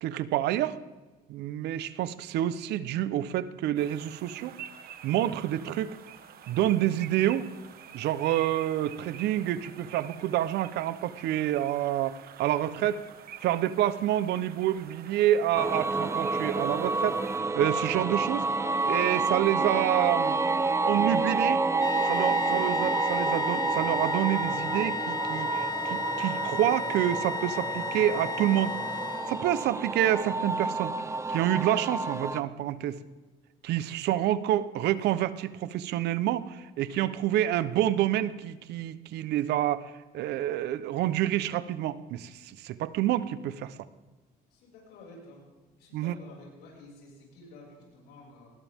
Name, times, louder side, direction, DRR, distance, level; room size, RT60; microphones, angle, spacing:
voice 1, 0.0-0.8 1.3-4.5 5.0-6.0 6.5-7.5 7.9-13.0 13.4-18.5 18.9-20.4 20.9-21.6 22.1-28.7 29.3-30.9 31.3-33.0 33.6-43.7 45.9-46.2, right 12 dB, 80° right, 15 dB, 0.9 m, -28 dB
sound 1, 3.8-17.4, right 9 dB, 65° right, 1.6 m, -48 dB
sound 2, 15.5-32.4, right 3 dB, 15° right, 0.8 m, -29 dB
sound 3, 21.8-29.7, left 4 dB, 25° left, 0.8 m, -33 dB
voice 2, 44.5-45.4 45.8-48.5, left 2 dB, 85° left, -3 dB, 6.6 m, -51 dB
20.0 x 19.5 x 3.6 m, 1.2 s
cardioid pair, 110°, 17 cm